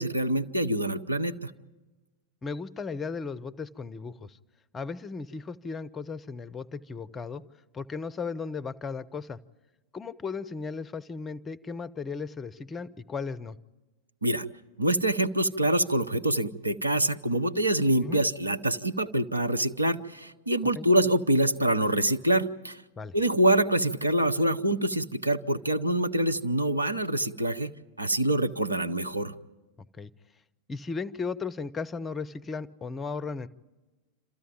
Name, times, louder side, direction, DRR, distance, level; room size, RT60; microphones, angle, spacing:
voice 1, 0.0-1.5 14.2-14.4 14.8-22.8 23.1-27.7 28.0-29.3, right 1 dB, 85° right, 8 dB, 0.7 m, -25 dB
voice 2, 2.4-4.4 4.7-7.4 7.7-9.4 9.9-13.6 18.0-18.2 20.8-20.9 23.0-23.1 30.0-30.1 30.7-33.5, left 4 dB, 20° left, 15 dB, 0.6 m, -36 dB
27.5 x 14.0 x 9.1 m, 1.2 s
figure-of-eight pair, 90°, 0 cm